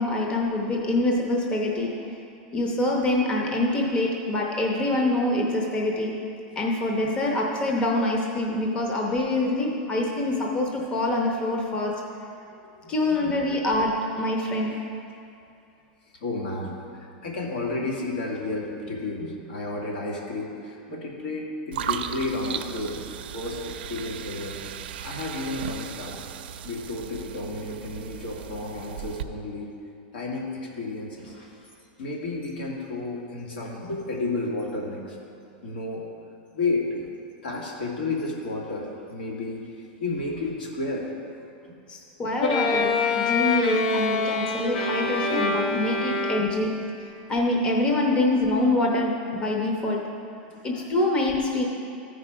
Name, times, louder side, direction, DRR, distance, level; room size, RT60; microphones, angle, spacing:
voice 1, 0.0-2.2 2.5-6.2 6.6-12.1 12.9-14.8 41.9-46.9 47.3-50.1 50.6-51.7, left 2 dB, 20° left, 0 dB, 0.8 m, -25 dB
voice 2, 12.5-13.3 16.2-23.0 23.3-24.6 25.0-26.2 26.6-29.7 30.1-31.7 32.0-35.2 35.6-36.1 36.5-37.0 37.4-41.1 42.2-42.3 46.4-46.5 50.4-50.9, left 2 dB, 80° left, -2 dB, 2.1 m, -32 dB
sound 1, 21.7-29.2, right 9 dB, 85° right, 0.5 m, -36 dB
Bowed string instrument, 42.4-46.8, left 3 dB, 65° left, 0.9 m, -25 dB
14.0 x 4.8 x 4.9 m, 2.6 s
supercardioid pair, 155°, 5 cm